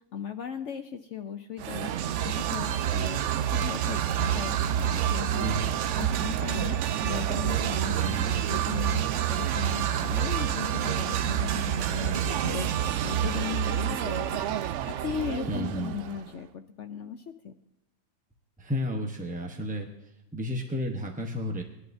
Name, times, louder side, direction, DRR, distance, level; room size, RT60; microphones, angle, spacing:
voice 1, 0.1-1.9 2.2-3.2 3.5-5.5 6.0-8.1 8.5-14.4 14.9-17.5, left 8 dB, 65° left, 7 dB, 0.7 m, -37 dB
sound 1, 1.6-16.3, right 10 dB, 85° right, 0.6 m, -28 dB
voice 2, 7.9-8.4 15.5-15.9 18.6-21.6, equal, 10° right, 1 dB, 0.6 m, -32 dB
20.0 x 11.0 x 2.7 m, 0.89 s
omnidirectional pair, 1.8 m